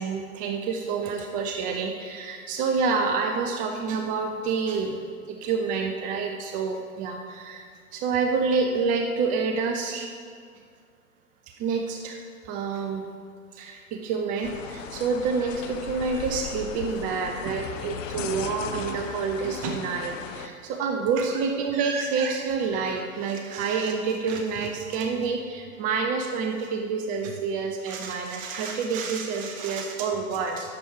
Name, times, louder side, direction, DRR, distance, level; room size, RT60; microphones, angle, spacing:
voice 1, 0.0-5.0 5.3-10.1 11.6-12.2 12.4-13.0 13.5-30.7, right 5 dB, 20° right, 3 dB, 0.4 m, -28 dB
sound 1, 14.4-20.5, left 8 dB, 60° left, 0.8 m, -37 dB
10.0 x 7.0 x 4.8 m, 2.1 s
figure-of-eight pair, 105°, 42 cm